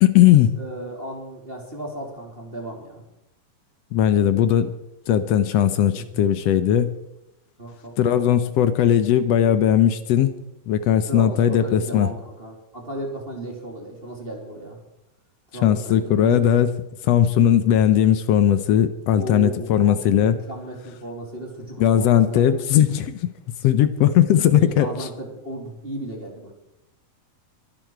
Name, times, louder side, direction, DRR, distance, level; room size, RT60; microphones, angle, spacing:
voice 1, 0.0-0.6 3.9-4.7 5.1-6.9 8.0-10.3 10.7-12.1 15.6-16.8 17.0-20.4 21.8-23.2 23.6-24.9, left 10 dB, 75° left, 12 dB, 1.5 m, -18 dB
voice 2, 0.5-3.0 6.0-6.2 7.6-8.4 11.1-14.8 15.5-16.4 19.2-22.4 24.5-26.5, right 1 dB, 15° right, 0 dB, 3.0 m, -35 dB
23.0 x 11.5 x 4.6 m, 0.86 s
omnidirectional pair, 3.8 m